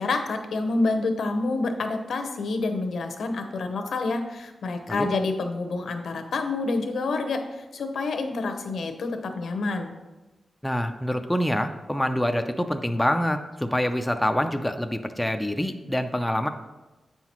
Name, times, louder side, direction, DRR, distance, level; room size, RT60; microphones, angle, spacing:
voice 1, 0.0-9.9, left 3 dB, 80° left, 5 dB, 0.8 m, -28 dB
voice 2, 10.6-16.5, equal, 5° left, 6 dB, 0.3 m, -26 dB
8.0 x 5.7 x 3.0 m, 1.1 s
wide cardioid pair, 155°, 0 cm